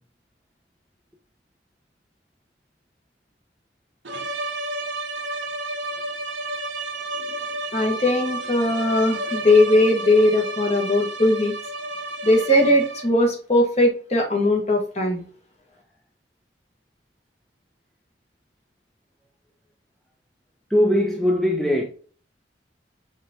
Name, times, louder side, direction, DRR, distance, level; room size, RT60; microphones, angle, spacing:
sound 1, 4.0-13.2, right 2 dB, 85° right, 0.8 m, -31 dB
voice 1, 7.7-11.5 12.2-15.2, left 1 dB, 35° left, 1.3 m, -19 dB
voice 2, 20.7-21.8, left 1 dB, ahead, 0.5 m, -20 dB
5.0 x 3.5 x 2.8 m
head